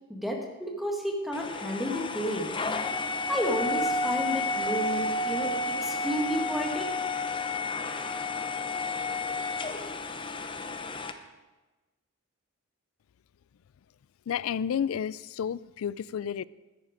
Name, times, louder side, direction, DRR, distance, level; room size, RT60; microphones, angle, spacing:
voice 1, 0.1-2.5 3.3-6.9, equal, ahead, 1 dB, 1.8 m, -31 dB
sound 1, 1.3-11.1, left 2 dB, 25° left, 0.7 m, -31 dB
voice 2, 14.3-16.4, left 8 dB, 85° left, 21 dB, 0.3 m, -31 dB
13.5 x 10.0 x 5.1 m, 1.2 s
head